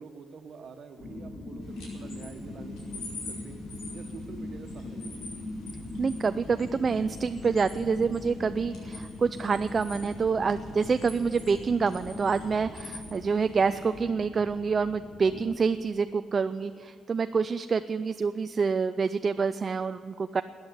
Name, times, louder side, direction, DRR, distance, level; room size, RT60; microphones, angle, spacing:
voice 1, 0.0-3.6 3.9-5.3, right 5 dB, 55° right, 7 dB, 1.4 m, -46 dB
sound 1, 1.0-15.4, left 2 dB, 35° left, 3.8 m, -40 dB
sound 2, 1.6-14.0, left 3 dB, 85° left, 4.9 m, -48 dB
voice 2, 6.0-20.4, right 5 dB, 40° right, 11 dB, 0.4 m, -27 dB
13.5 x 9.6 x 9.9 m, 2.5 s
cardioid pair, 90°, 0 cm